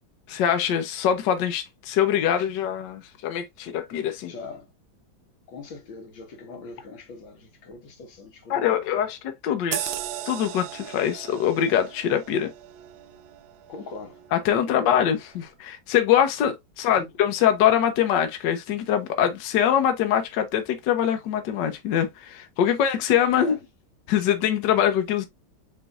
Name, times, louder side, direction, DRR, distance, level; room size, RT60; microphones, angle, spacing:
voice 1, 0.3-4.3 8.5-9.9 10.2-12.5 14.3-23.6 24.1-25.2, left 9 dB, 70° left, 1.3 m, -23 dB
voice 2, 4.2-4.7 5.5-9.0 13.7-14.2 14.7-14.9 16.9-17.1 23.4-23.6, left 4 dB, 90° left, 2.2 m, -41 dB
sound 1, 9.7-14.7 15.1-15.3, right 12 dB, 85° right, 1.4 m, -37 dB
6.9 x 3.1 x 2.4 m
omnidirectional pair, 2.1 m